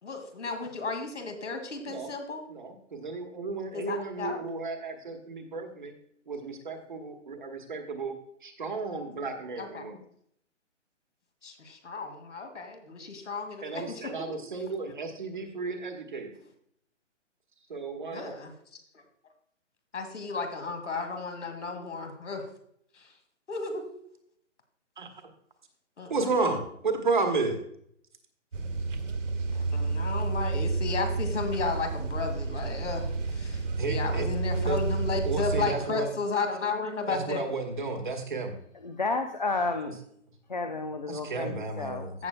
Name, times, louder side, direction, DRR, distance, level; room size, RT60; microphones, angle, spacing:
voice 1, 0.0-2.4 3.7-4.4 9.6-9.8 11.4-14.1 18.1-18.5 19.9-22.4 22.9-23.1 23.5-23.9 26.0-26.3 29.5-37.4 41.2-41.6 42.2-42.3, left 4 dB, 70° left, 6 dB, 2.2 m, -34 dB
voice 2, 2.5-5.9 6.3-8.1 8.4-10.0 13.6-16.3 17.7-18.4 25.0-25.3 26.1-27.6 33.8-34.3 34.7-34.8 35.2-36.1 37.1-38.6 41.1-42.2, right 3 dB, 40° right, 5 dB, 1.2 m, -33 dB
sound 1, 28.5-35.7, right 3 dB, 85° right, 1.8 m, -30 dB
voice 3, 38.8-40.0 40.5-42.1, left 3 dB, 40° left, 6 dB, 0.6 m, -31 dB
15.5 x 6.7 x 2.2 m, 0.70 s
hypercardioid pair, 180°, 37 cm